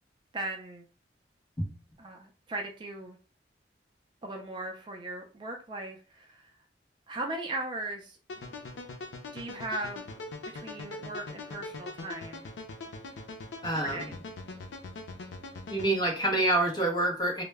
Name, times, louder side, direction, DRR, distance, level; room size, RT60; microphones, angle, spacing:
voice 1, 0.3-0.9 2.0-3.2 4.2-6.5 7.1-8.2 9.3-10.1 10.5-12.4 13.8-14.2, right 2 dB, 25° right, 3 dB, 0.3 m, -38 dB
sound 1, 8.3-15.9, left 2 dB, 85° left, 0.5 m, -42 dB
voice 2, 13.6-14.0 15.7-17.4, right 1 dB, 25° left, -2 dB, 0.7 m, -27 dB
2.1 x 2.0 x 3.3 m, 0.36 s
head